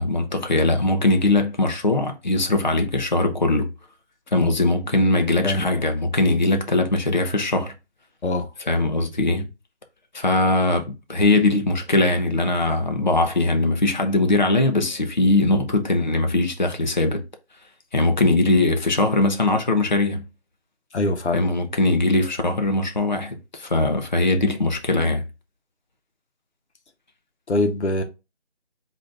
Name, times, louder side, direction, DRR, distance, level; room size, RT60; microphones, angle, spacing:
voice 1, 0.0-3.7 4.3-7.7 8.7-9.5 10.1-17.2 17.9-20.3 21.3-25.2, left 2 dB, 40° left, 0.6 m, -21 dB
voice 2, 5.4-5.8 8.2-8.5 20.9-21.5 27.5-28.0, left 2 dB, 75° left, 0.9 m, -23 dB
3.9 x 2.5 x 3.2 m
figure-of-eight pair, 175°, 34 cm